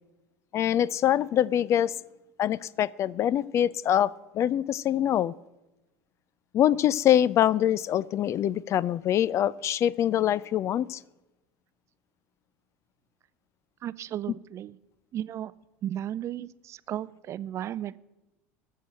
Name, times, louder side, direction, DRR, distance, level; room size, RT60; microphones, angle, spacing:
voice 1, 0.5-1.9 2.4-5.3 6.5-11.0, left 11 dB, 45° left, 23 dB, 0.4 m, -24 dB
voice 2, 13.8-14.8 15.1-15.5 15.8-18.0, right 11 dB, 45° right, 18 dB, 0.5 m, -34 dB
14.0 x 6.4 x 7.6 m, 1.0 s
hypercardioid pair, 85°, 7 cm